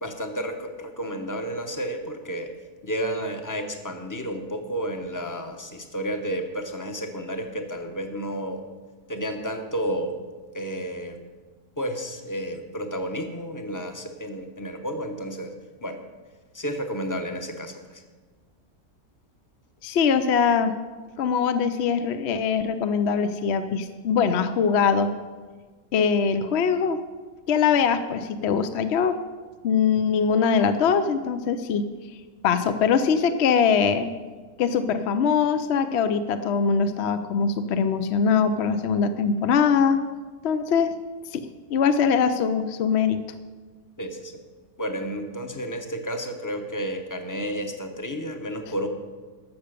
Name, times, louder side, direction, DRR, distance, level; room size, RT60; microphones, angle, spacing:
voice 1, 0.0-2.5 2.8-8.6 9.1-10.1 10.5-11.2 11.8-15.5 15.8-16.0 16.5-17.7 44.0-44.3 44.8-48.9, equal, 15° left, 5 dB, 0.8 m, -31 dB
voice 2, 19.8-20.7 21.2-25.2 25.9-27.0 27.5-29.2 29.6-31.9 32.4-34.1 34.6-40.0 40.4-40.9 41.3-43.2, left 6 dB, 60° left, 10 dB, 0.7 m, -22 dB
12.5 x 6.8 x 6.7 m, 1.4 s
omnidirectional pair, 1.6 m